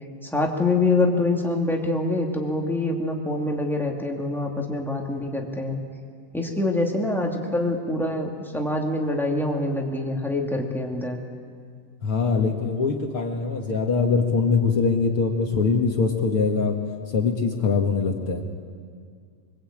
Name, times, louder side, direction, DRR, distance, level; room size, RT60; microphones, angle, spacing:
voice 1, 0.2-5.8 6.3-11.2, left 2 dB, ahead, 0 dB, 0.7 m, -25 dB
voice 2, 12.0-16.8 17.1-18.4, left 4 dB, 50° left, 2 dB, 1.8 m, -22 dB
24.5 x 23.0 x 8.8 m, 2.1 s
omnidirectional pair, 4.6 m